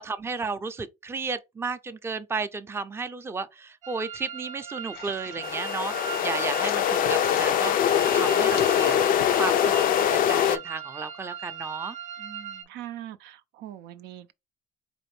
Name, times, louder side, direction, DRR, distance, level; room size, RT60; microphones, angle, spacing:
voice 1, 0.0-9.0 9.4-9.9 10.1-12.7, right 4 dB, 15° right, 0.4 m, -34 dB
sound 1, 3.8-12.6, right 8 dB, 50° right, 0.7 m, -39 dB
sound 2, 4.9-5.7 6.6-7.6 8.5-9.4, left 6 dB, 85° left, 0.9 m, -41 dB
sound 3, 5.4-10.6, left 10 dB, 55° left, 0.4 m, -23 dB
voice 2, 12.7-14.3, right 12 dB, 85° right, 0.4 m, -41 dB
4.2 x 2.5 x 3.1 m
cardioid pair, 110°, 17 cm